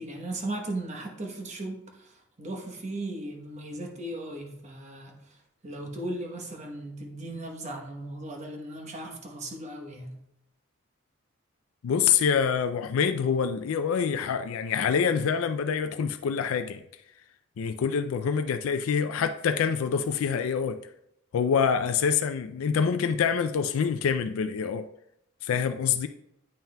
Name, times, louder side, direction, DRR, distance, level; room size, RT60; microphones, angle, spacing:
voice 1, 0.0-5.4 5.6-10.2, right 1 dB, 35° right, 1.0 m, -37 dB
voice 2, 11.8-16.8 17.6-20.8 21.3-24.9 25.4-26.1, left 6 dB, 90° left, 0.3 m, -26 dB
8.9 x 5.6 x 2.2 m
head